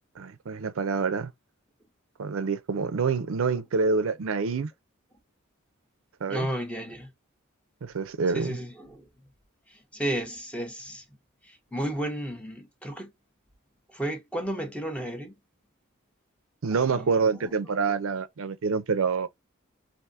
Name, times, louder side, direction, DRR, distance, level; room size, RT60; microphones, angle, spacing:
voice 1, 0.2-1.3 2.2-4.7 6.2-6.5 7.8-8.6 16.6-19.3, right 5 dB, 70° right, 0.5 m, -27 dB
voice 2, 6.3-7.1 8.3-9.1 9.7-11.0 11.4-13.1 13.9-15.3 16.7-17.5, right 1 dB, 5° left, 0.7 m, -33 dB
3.4 x 2.6 x 2.5 m
head